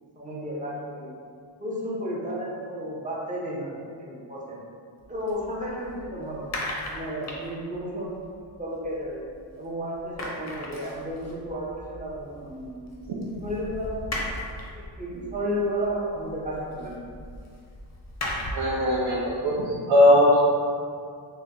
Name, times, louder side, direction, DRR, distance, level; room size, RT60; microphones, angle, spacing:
voice 1, 0.2-1.2 1.6-4.6 5.1-6.5 6.9-8.2 8.6-9.3 9.6-12.8 13.4-14.3 14.7-17.0, equal, 15° right, -5 dB, 0.5 m, -32 dB
sound 1, 5.0-9.6 9.9-18.8, left 1 dB, 35° left, 0.5 m, -38 dB
voice 2, 18.5-20.4, left 1 dB, 65° right, -6 dB, 0.6 m, -19 dB
2.9 x 2.1 x 3.6 m, 2.2 s
wide cardioid pair, 145°, 48 cm